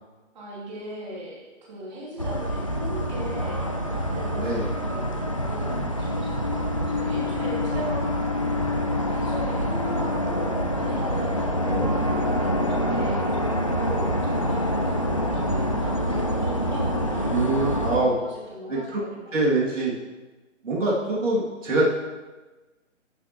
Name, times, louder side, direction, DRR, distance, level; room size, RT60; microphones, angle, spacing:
voice 1, 0.3-4.5 4.8-8.6 8.9-19.3, right 1 dB, 35° right, -6 dB, 3.1 m, -38 dB
sound 1, 2.2-18.0, equal, 25° left, 0.4 m, -26 dB
voice 2, 4.4-4.7 5.6-5.9 11.6-11.9 17.3-18.1 18.7-19.0 19.3-19.9 20.6-21.8, right 2 dB, 75° right, -5 dB, 2.8 m, -25 dB
11.5 x 8.2 x 3.1 m, 1.2 s
hypercardioid pair, 165°, 38 cm